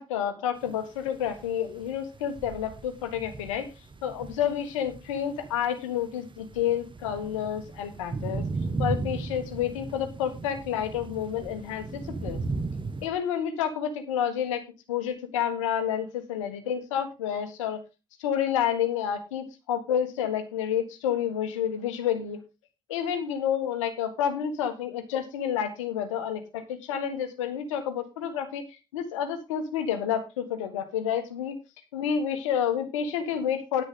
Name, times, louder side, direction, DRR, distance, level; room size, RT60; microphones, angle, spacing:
voice 1, 0.0-3.7 4.0-8.4 8.8-11.9 12.2-12.4 13.0-14.6 14.9-17.8 18.2-22.4 22.9-28.6 28.9-31.6 31.9-33.8, left 9 dB, 85° left, 8 dB, 1.5 m, -29 dB
sound 1, 0.6-13.1, right 3 dB, 30° right, 1.7 m, -36 dB
10.0 x 9.8 x 3.8 m, 0.27 s
hypercardioid pair, 45°, 16 cm